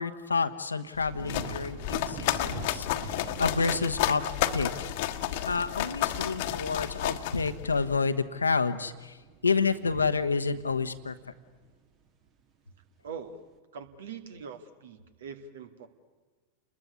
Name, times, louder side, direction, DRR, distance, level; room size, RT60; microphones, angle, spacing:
voice 1, 0.0-1.8 2.1-4.2 4.5-4.9 5.5-9.2 9.4-11.2, left 4 dB, 75° left, 10 dB, 1.2 m, -29 dB
sound 1, 1.0-7.9, left 13 dB, 50° left, 1.4 m, -31 dB
sound 2, 1.1-12.4 12.8-13.3, right 6 dB, 35° right, 1.8 m, -47 dB
voice 2, 13.0-13.4 13.7-15.9, right 6 dB, 60° right, 10 dB, 2.1 m, -42 dB
29.5 x 21.0 x 9.6 m, 1.3 s
figure-of-eight pair, 90°, 0 cm